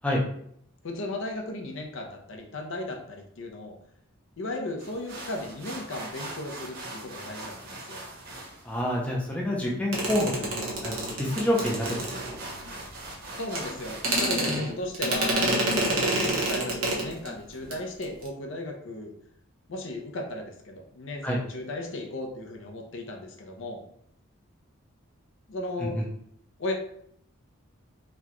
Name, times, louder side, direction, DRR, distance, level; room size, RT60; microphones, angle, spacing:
voice 1, 0.8-3.8 4.4-8.0 13.3-19.1 19.7-23.8 25.5-26.0 26.6-26.7, left 2 dB, 60° left, 3 dB, 0.6 m, -35 dB
sound 1, 4.8-14.4, right 2 dB, 45° right, 0.9 m, -42 dB
voice 2, 8.6-12.4 14.5-14.6 21.2-21.4 25.8-26.0, left 1 dB, 5° left, -3 dB, 0.4 m, -28 dB
sound 2, 9.9-12.7 13.5-13.6 14.0-17.3 17.6-17.8 18.0-18.3, right 1 dB, 70° right, 0.9 m, -28 dB
4.2 x 2.2 x 2.9 m, 0.68 s
head